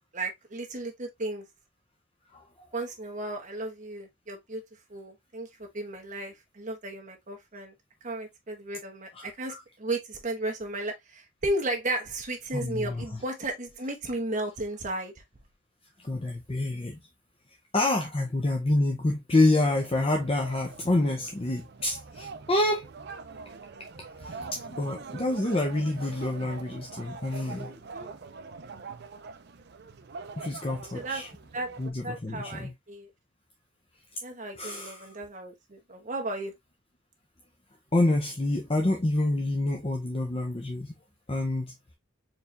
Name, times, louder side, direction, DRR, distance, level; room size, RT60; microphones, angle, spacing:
voice 1, 0.1-1.5 2.7-4.6 4.9-7.7 8.0-15.1 27.6-28.1 30.9-31.2 31.5-31.7 32.0-33.1 34.2-36.5, right 2 dB, 40° right, 1.1 m, -34 dB
voice 2, 9.1-9.6 12.5-13.2 16.0-17.0 17.7-22.9 24.2-27.8 30.4-31.3 31.8-32.7 34.6-35.1 37.9-40.9 41.3-41.7, left 2 dB, 30° left, 0.7 m, -27 dB
sound 1, 19.7-31.9, right 4 dB, 55° right, 0.5 m, -44 dB
4.5 x 3.3 x 2.6 m
head